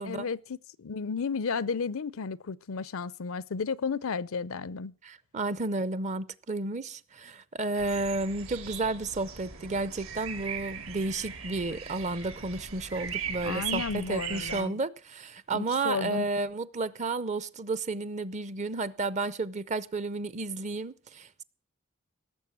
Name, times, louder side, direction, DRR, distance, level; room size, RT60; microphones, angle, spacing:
voice 1, 0.0-4.9 13.4-14.7 15.5-16.2, left 5 dB, 70° left, 0.5 m, -33 dB
voice 2, 5.0-21.4, right 3 dB, 35° right, 0.6 m, -32 dB
sound 1, 7.7-14.6, right 7 dB, 70° right, 2.7 m, -39 dB
17.5 x 7.3 x 7.4 m
head